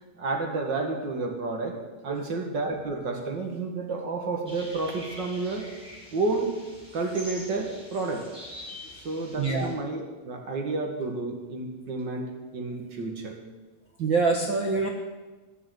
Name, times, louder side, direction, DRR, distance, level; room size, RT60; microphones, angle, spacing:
voice 1, 0.2-5.7 6.1-6.5 6.9-8.3 8.9-13.4, right 3 dB, 40° right, 3 dB, 2.0 m, -30 dB
sound 1, 4.5-9.7, left 1 dB, 10° right, 4.7 m, -45 dB
voice 2, 9.4-9.7 14.0-14.9, right 4 dB, 60° right, 2 dB, 1.2 m, -25 dB
18.0 x 6.7 x 9.4 m, 1.2 s
omnidirectional pair, 3.9 m